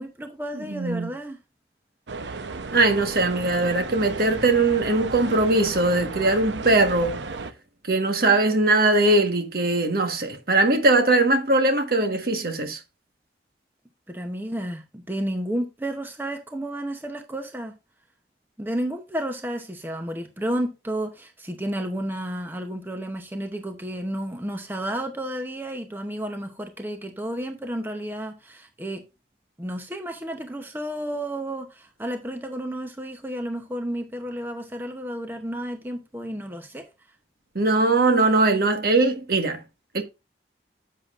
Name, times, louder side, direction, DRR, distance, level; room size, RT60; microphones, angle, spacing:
voice 1, 0.0-1.4 14.1-17.7 18.6-29.0 29.6-36.8, right 1 dB, 10° right, 0.7 m, -32 dB
voice 2, 0.7-1.1 2.7-7.2 7.8-12.8 37.5-39.6 39.9-40.0, right 2 dB, 55° right, 1.4 m, -20 dB
sound 1, 2.1-7.5, right 3 dB, 85° right, 0.8 m, -34 dB
10.5 x 7.4 x 2.4 m
head